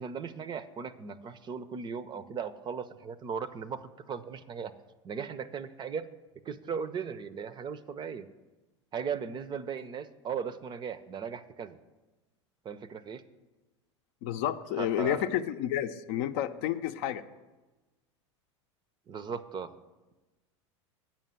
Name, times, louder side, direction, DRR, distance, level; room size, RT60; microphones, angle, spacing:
voice 1, 0.0-4.8 5.0-6.1 6.4-8.3 8.9-11.8 12.6-13.2 14.8-15.3 19.1-19.7, right 6 dB, 30° right, 14 dB, 0.5 m, -37 dB
voice 2, 14.2-17.2, left 11 dB, 60° left, 9 dB, 0.6 m, -30 dB
8.9 x 5.8 x 7.4 m, 1.2 s
hypercardioid pair, 85°, 16 cm